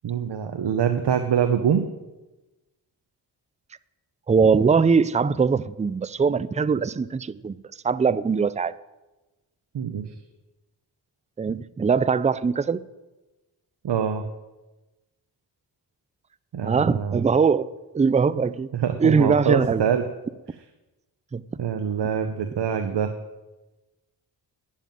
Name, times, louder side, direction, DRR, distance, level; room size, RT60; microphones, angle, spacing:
voice 1, 0.0-1.8 9.7-10.1 13.8-14.2 16.5-17.2 18.7-20.0 21.6-23.1, right 8 dB, 75° right, 7 dB, 1.0 m, -24 dB
voice 2, 4.3-7.6 7.8-8.8 11.4-12.8 16.6-18.7 19.0-19.8 21.3-21.4, right 5 dB, 20° right, 17 dB, 0.4 m, -21 dB
11.5 x 7.4 x 9.2 m, 1.1 s
cardioid pair, 80°, 42 cm